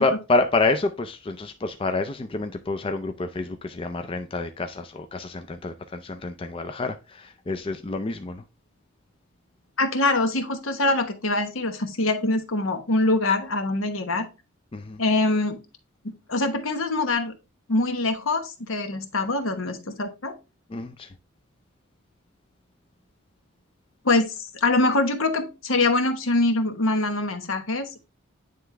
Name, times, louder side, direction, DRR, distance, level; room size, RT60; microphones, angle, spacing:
voice 1, 0.0-8.4 14.7-15.0 20.7-21.1, left 3 dB, 25° left, 0.4 m, -28 dB
voice 2, 9.8-14.3 15.0-15.6 16.0-17.3 17.7-20.3 24.0-28.0, left 2 dB, 75° left, 1.0 m, -24 dB
9.3 x 3.4 x 3.3 m
head